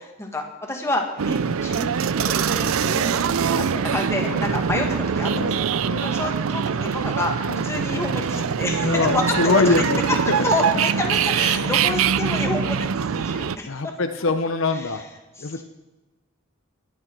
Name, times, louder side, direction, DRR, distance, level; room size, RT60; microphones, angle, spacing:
voice 1, 0.0-5.7 6.0-10.2 10.4-13.9 14.7-14.9 15.4-15.6, left 2 dB, 15° left, 1 dB, 1.9 m, -29 dB
sound 1, 1.2-13.6, right 6 dB, 75° right, 0.5 m, -23 dB
voice 2, 2.8-3.1 3.5-3.7 4.3-4.5 5.3-5.6 5.9-6.1 7.5-7.6 8.8-10.0 10.3-10.7 11.6-11.8 13.7-15.0 15.4-15.6, left 3 dB, 65° left, 7 dB, 0.8 m, -24 dB
21.5 x 8.6 x 4.6 m, 1.1 s
head